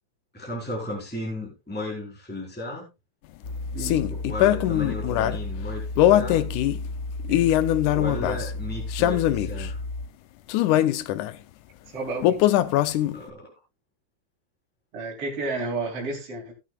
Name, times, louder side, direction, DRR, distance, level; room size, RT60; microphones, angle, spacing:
voice 1, 0.3-2.9 4.1-6.4 7.9-9.8 13.1-13.5, left 1 dB, 5° left, 4.2 m, -35 dB
sound 1, 3.4-10.0, left 2 dB, 25° left, 3.9 m, -33 dB
sound 2, 3.8-5.4 6.0-6.8 7.3-8.5 8.9-9.7 10.5-11.3 12.2-13.3, left 13 dB, 80° left, 1.8 m, -22 dB
voice 2, 11.9-12.4 14.9-16.5, right 3 dB, 40° right, 4.0 m, -31 dB
18.0 x 8.6 x 2.3 m
omnidirectional pair, 4.1 m